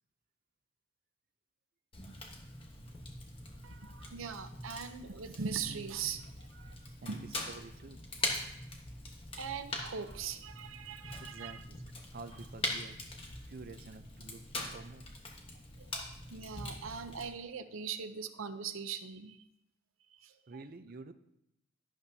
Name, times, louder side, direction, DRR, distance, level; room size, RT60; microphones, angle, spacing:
Fire, 1.9-17.3, left 2 dB, 25° left, 1.3 m, -43 dB
voice 1, 3.6-7.4 9.4-11.6 15.8-19.4 20.1-20.6, right 6 dB, 85° right, 10 dB, 0.7 m, -41 dB
voice 2, 7.0-8.1 11.2-11.8 12.1-13.0 13.5-14.5 14.7-15.1 20.5-21.1, right 3 dB, 45° right, 10 dB, 0.5 m, -49 dB
11.5 x 11.0 x 2.8 m, 0.82 s
head